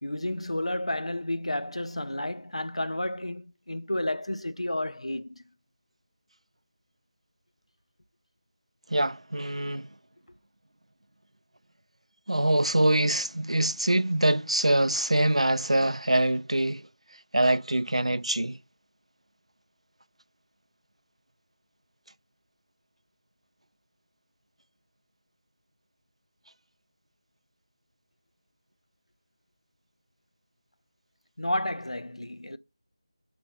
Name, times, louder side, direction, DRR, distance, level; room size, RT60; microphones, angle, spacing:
voice 1, 0.0-5.4 31.4-32.6, left 1 dB, 80° left, 0.6 m, -31 dB
voice 2, 8.9-9.9 12.3-16.8 17.3-18.6, right 1 dB, 85° right, 0.4 m, -24 dB
7.4 x 4.3 x 4.0 m
figure-of-eight pair, 165°, 3 cm